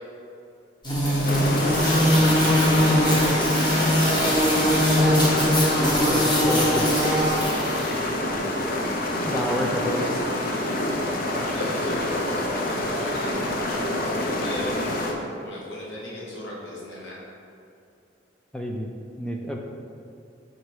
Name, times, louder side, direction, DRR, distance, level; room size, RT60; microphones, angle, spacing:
sound 1, 0.8-8.0, equal, 25° left, 1.1 m, -21 dB
voice 1, 0.9-4.6 6.8-7.5 7.9-8.3 10.0-10.2 10.9-12.2 12.5-17.2, left 1 dB, 70° left, -5 dB, 1.2 m, -37 dB
sound 2, 1.2-15.1, left 1 dB, 50° left, 0.6 m, -27 dB
voice 2, 6.1-6.8 9.2-10.1 18.5-18.9 19.2-19.6, left 1 dB, 5° left, 0 dB, 0.3 m, -29 dB
5.5 x 4.0 x 4.7 m, 2.6 s
head